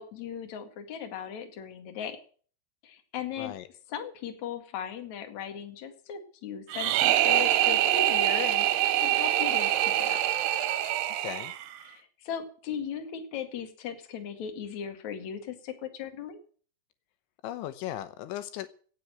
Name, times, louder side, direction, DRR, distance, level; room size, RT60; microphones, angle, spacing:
voice 1, 0.0-2.2 2.8-3.5 3.9-8.7 9.0-10.2 11.8-16.4, left 8 dB, 50° left, 6 dB, 2.8 m, -37 dB
voice 2, 3.4-3.7 11.2-11.5 17.4-18.7, left 13 dB, 85° left, 12 dB, 3.4 m, -37 dB
sound 1, 6.7-11.8, right 13 dB, 75° right, 2.7 m, -25 dB
17.0 x 7.2 x 7.8 m, 0.43 s
omnidirectional pair, 5.2 m